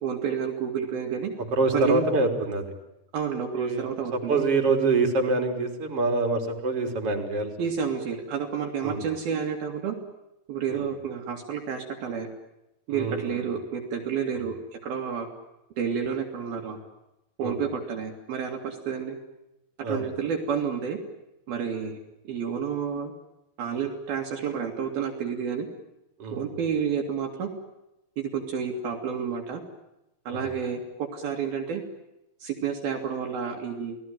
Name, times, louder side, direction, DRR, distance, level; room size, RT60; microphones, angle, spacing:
voice 1, 0.0-1.3 1.7-2.1 3.1-4.4 7.6-10.0 10.5-12.3 12.9-15.3 15.8-16.8 17.4-19.2 19.8-21.0 21.5-22.0 22.3-23.1 23.6-25.7 26.3-27.5 28.2-29.6 30.3-31.8 32.4-34.0, right 7 dB, 60° right, 2 dB, 3.9 m, -30 dB
voice 2, 1.5-2.7 3.5-3.9 4.1-7.5 8.8-9.0 10.7-10.8 12.9-13.4 17.4-17.6 19.8-20.0 26.2-26.4 30.3-30.5, right 3 dB, 35° right, 4 dB, 4.2 m, -25 dB
29.5 x 19.5 x 9.1 m, 0.92 s
omnidirectional pair, 4.9 m